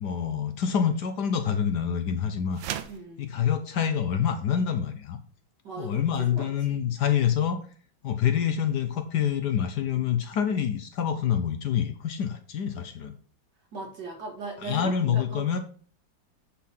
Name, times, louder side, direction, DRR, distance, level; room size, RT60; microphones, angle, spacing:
voice 1, 0.0-2.6 3.2-5.2 5.8-7.6 8.0-13.1 14.6-15.6, left 8 dB, 65° left, 8 dB, 1.2 m, -26 dB
sound 1, 2.5-3.1, right 10 dB, 80° right, 1.4 m, -34 dB
voice 2, 2.9-3.3 5.6-6.0 6.3-6.8 13.7-15.6, right 3 dB, 60° right, 1 dB, 2.7 m, -39 dB
8.4 x 4.4 x 5.6 m, 0.43 s
omnidirectional pair, 2.2 m